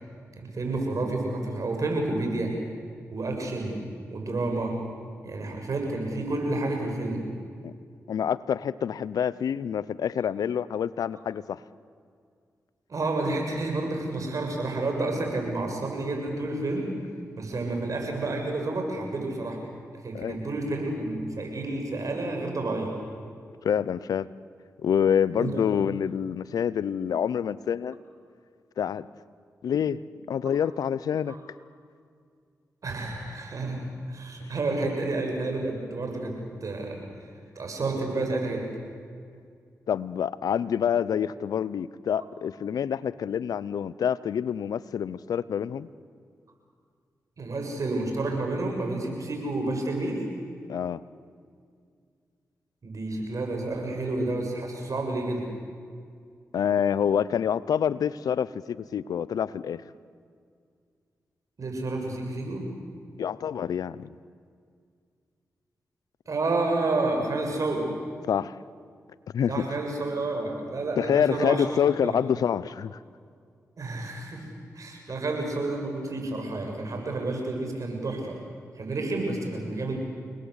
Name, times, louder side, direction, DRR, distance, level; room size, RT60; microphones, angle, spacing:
voice 1, 0.4-2.5 3.1-3.8 4.1-4.7 5.2-7.2 12.9-17.0 17.4-19.6 20.0-22.9 25.4-25.6 31.3-31.4 32.8-36.3 36.6-37.0 37.6-38.6 47.4-50.2 52.8-55.5 61.6-62.7 66.3-67.8 69.5-71.6 72.0-72.1 73.8-74.4 74.7-78.4 78.8-80.0, right 2 dB, 60° right, 2 dB, 7.3 m, -30 dB
voice 2, 8.1-11.6 20.1-20.4 23.6-24.3 24.8-28.0 28.8-29.0 29.6-30.0 30.3-31.4 39.9-45.9 50.7-51.0 56.5-59.8 63.2-64.1 68.3-68.6 69.3-69.7 71.0-73.0, left 8 dB, 80° left, 18 dB, 0.7 m, -27 dB
29.5 x 20.5 x 8.3 m, 2.2 s
supercardioid pair, 45°, 6 cm